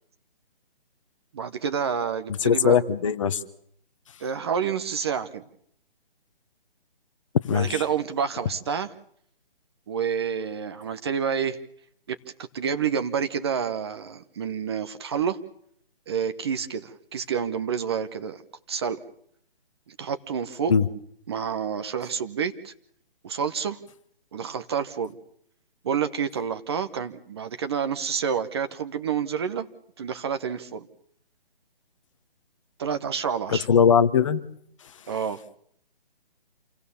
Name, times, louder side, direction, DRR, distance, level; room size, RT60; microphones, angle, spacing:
voice 1, 1.3-2.8 4.2-5.4 7.5-8.9 9.9-11.6 12.1-12.2 12.5-15.4 16.1-18.4 18.7-19.0 19.9-20.7 21.3-22.7 23.2-23.8 24.3-25.2 25.8-29.7 30.0-30.9 32.8-33.7 35.1-35.4, right 7 dB, 25° right, 10 dB, 0.9 m, -28 dB
voice 2, 2.4-3.4 7.5-7.8 20.7-20.9 33.5-34.4, left 7 dB, 30° left, 11 dB, 1.1 m, -20 dB
28.0 x 18.0 x 7.1 m, 0.69 s
hypercardioid pair, 160°, 30 cm